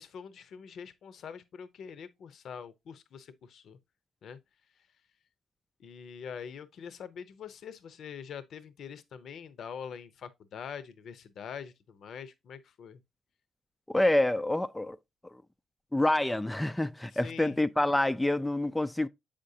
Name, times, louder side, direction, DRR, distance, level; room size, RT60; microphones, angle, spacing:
voice 1, 0.0-3.8 4.2-4.4 5.8-13.0 17.1-17.6, left 7 dB, 65° left, 0.7 m, -44 dB
voice 2, 13.9-15.0 15.3-15.4 15.9-19.1, left 1 dB, 10° left, 0.3 m, -27 dB
7.4 x 5.1 x 2.7 m
cardioid pair, 90°, 0 cm